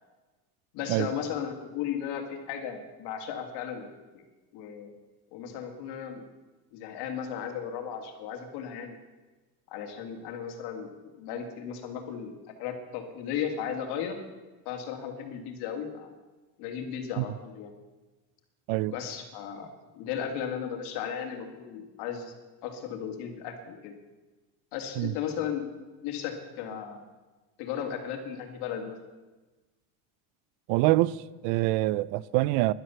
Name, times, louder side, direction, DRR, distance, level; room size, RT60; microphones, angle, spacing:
voice 1, 0.7-4.3 4.5-4.9 5.3-6.2 6.7-9.0 9.7-10.9 11.2-14.2 14.7-16.1 16.6-17.7 18.9-22.3 22.6-23.9 24.7-25.7 26.0-27.0 27.6-29.0, left 8 dB, 70° left, 5 dB, 2.5 m, -35 dB
voice 2, 30.7-32.7, right 18 dB, 80° right, 22 dB, 0.6 m, -25 dB
11.5 x 11.5 x 8.4 m, 1.2 s
cardioid pair, 140°, 41 cm